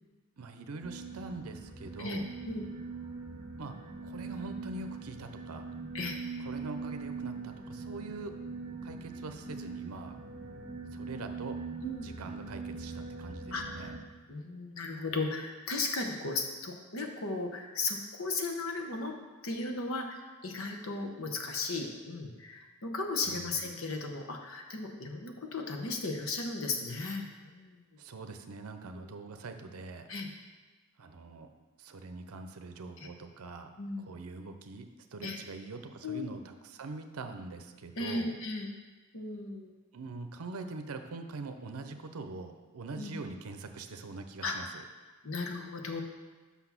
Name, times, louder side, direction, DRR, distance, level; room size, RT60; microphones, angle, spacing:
voice 1, 0.4-2.3 3.6-3.8 4.0-5.7 6.4-8.4 8.8-10.2 10.9-11.6 12.0-14.0 23.2-23.7 28.0-30.1 31.0-31.5 31.8-38.4 39.9-44.8, right 3 dB, 85° right, 7 dB, 0.6 m, -43 dB
sound 1, 0.8-14.0, right 4 dB, 20° right, 1.4 m, -42 dB
voice 2, 2.0-2.7 5.9-6.2 11.8-12.0 13.5-13.9 14.3-19.1 19.4-27.8 29.0-29.1 30.1-30.3 33.8-34.2 35.2-35.4 36.0-36.3 38.0-38.7 39.1-39.7 43.0-43.1 44.4-44.5 45.2-46.0, left 3 dB, 65° left, 2 dB, 1.0 m, -36 dB
6.0 x 5.8 x 5.9 m, 1.3 s
head